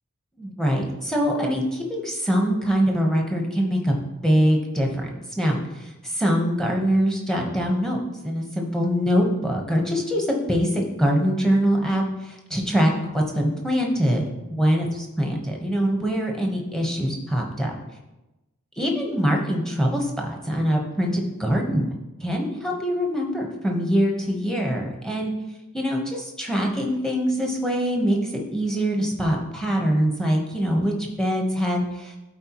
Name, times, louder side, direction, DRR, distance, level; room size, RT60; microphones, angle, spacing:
voice 1, 0.4-5.1 5.4-8.0 8.2-14.2 14.6-17.8 18.8-21.9 22.2-25.3 25.7-32.2, equal, 5° left, 0 dB, 1.0 m, -23 dB
12.0 x 4.5 x 3.0 m, 1.0 s
head